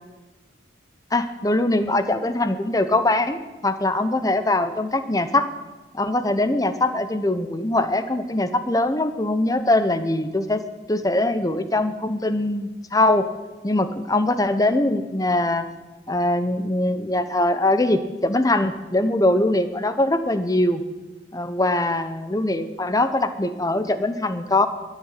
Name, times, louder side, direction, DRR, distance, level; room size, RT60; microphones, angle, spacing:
voice 1, 1.1-5.5 5.9-10.6 10.9-13.3 13.6-15.7 16.1-20.8 21.3-24.7, left 2 dB, 20° left, 10 dB, 0.8 m, -22 dB
13.0 x 10.5 x 8.3 m, 1.2 s
head